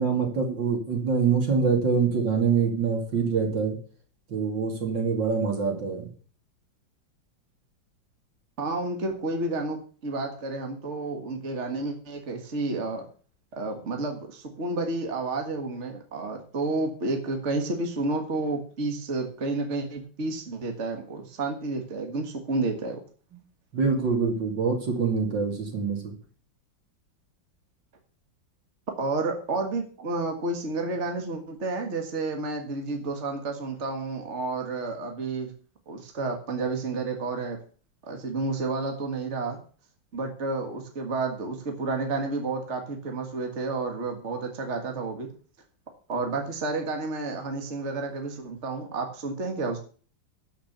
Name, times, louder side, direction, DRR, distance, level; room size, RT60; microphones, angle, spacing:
voice 1, 0.0-3.8 4.3-6.1 23.7-26.1, right 5 dB, 70° right, 3 dB, 3.2 m, -25 dB
voice 2, 8.6-13.0 13.5-23.0 29.0-35.5 35.9-37.6 38.1-39.6 40.1-45.3 46.1-49.8, right 3 dB, 40° right, 4 dB, 1.9 m, -30 dB
12.5 x 5.9 x 6.8 m, 0.41 s
omnidirectional pair, 2.1 m